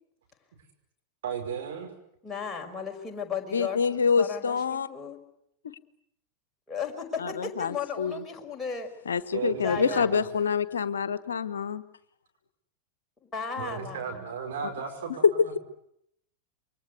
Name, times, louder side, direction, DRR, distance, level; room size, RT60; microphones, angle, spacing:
voice 1, 1.2-1.9 9.3-10.2 13.6-15.5, right 7 dB, 60° right, 2 dB, 5.6 m, -35 dB
voice 2, 2.2-5.2 6.7-8.9 9.6-10.2 13.2-14.2, left 6 dB, 10° left, 1 dB, 5.3 m, -35 dB
voice 3, 3.5-4.9 5.6-5.7 7.2-8.1 9.1-11.8 14.6-14.7 15.2-15.6, left 6 dB, 70° left, 15 dB, 1.3 m, -26 dB
28.0 x 23.5 x 8.2 m, 0.74 s
figure-of-eight pair, 90°, 0 cm